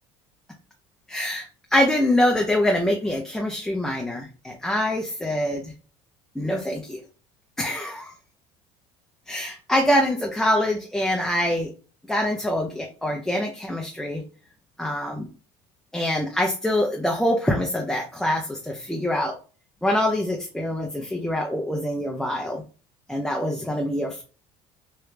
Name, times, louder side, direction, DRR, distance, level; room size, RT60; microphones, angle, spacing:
voice 1, 1.1-1.5 1.7-5.7 6.4-7.0 7.6-8.0 9.3-11.7 12.1-14.2 14.8-15.2 15.9-19.3 19.8-22.6 23.1-24.2, left 1 dB, 5° left, 0 dB, 0.6 m, -24 dB
3.2 x 2.3 x 3.2 m, 0.37 s
supercardioid pair, 90°, 14 cm